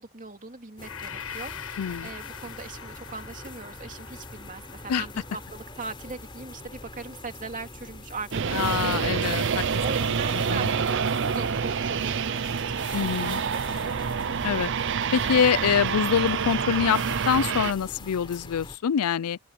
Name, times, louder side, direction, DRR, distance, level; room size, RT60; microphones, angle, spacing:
voice 1, 0.0-9.5 9.8-14.0, right 4 dB, 35° right, 2.7 m, -40 dB
Gong, 0.8-8.9, left 8 dB, 70° left, 7.1 m, -44 dB
sound 1, 0.8-18.8, left 2 dB, 20° left, 4.1 m, -43 dB
voice 2, 1.8-2.1 4.9-5.0 8.5-9.6 10.5-10.7 12.9-13.4 14.4-14.7 15.1-17.0 17.3-19.4, left 8 dB, 85° left, 0.4 m, -25 dB
sound 2, 8.3-17.7, right 6 dB, 55° right, 0.6 m, -27 dB
open air
head